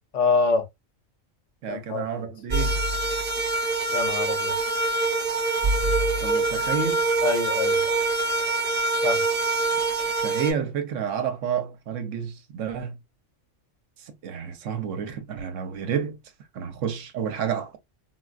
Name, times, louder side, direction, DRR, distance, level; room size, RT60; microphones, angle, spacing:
voice 1, 0.1-0.6 1.7-2.0 3.9-4.5 7.2-7.8 9.0-9.2, left 4 dB, 65° left, 1.2 m, -25 dB
voice 2, 1.6-2.8 6.2-7.1 10.2-13.0 14.2-16.2 16.5-17.8, right 7 dB, 70° right, 1.0 m, -30 dB
sound 1, 2.5-10.5, right 3 dB, 45° right, 1.2 m, -24 dB
4.2 x 2.4 x 2.3 m
omnidirectional pair, 1.4 m